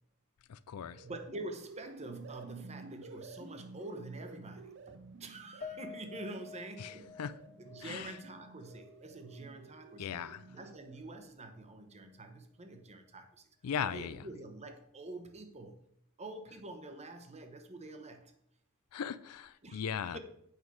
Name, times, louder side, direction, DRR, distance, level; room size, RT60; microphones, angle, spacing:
voice 1, 0.5-1.0 6.8-6.9 7.2-7.3 7.8-8.1 10.0-10.4 13.6-14.2 18.9-20.2, left 7 dB, 85° left, 0.4 m, -38 dB
sound 1, 0.7-11.3, right 4 dB, 55° right, 0.6 m, -53 dB
voice 2, 1.0-7.1 7.6-10.2 10.5-13.5 13.8-15.8 16.2-18.3 19.6-20.2, right 2 dB, 30° right, 0.9 m, -46 dB
Piano, 5.6-10.1 10.5-10.6 11.0-11.1, left 6 dB, 35° left, 0.6 m, -51 dB
8.4 x 5.5 x 4.7 m
head